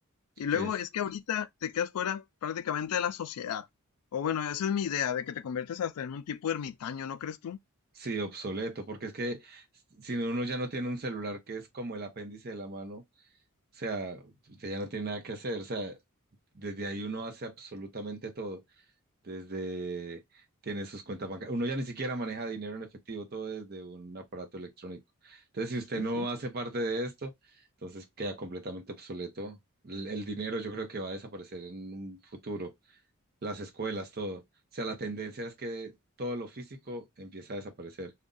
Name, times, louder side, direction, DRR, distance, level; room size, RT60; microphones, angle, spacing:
voice 1, 0.4-3.7 4.1-7.6 25.9-26.3, left 8 dB, 80° left, 0.4 m, -32 dB
voice 2, 8.0-9.6 9.9-13.0 13.7-16.0 16.5-18.6 19.2-20.2 20.6-27.3 27.8-29.6 29.8-32.7 33.4-34.4 34.7-38.1, right 2 dB, 45° right, 0.8 m, -36 dB
2.6 x 2.2 x 3.7 m
head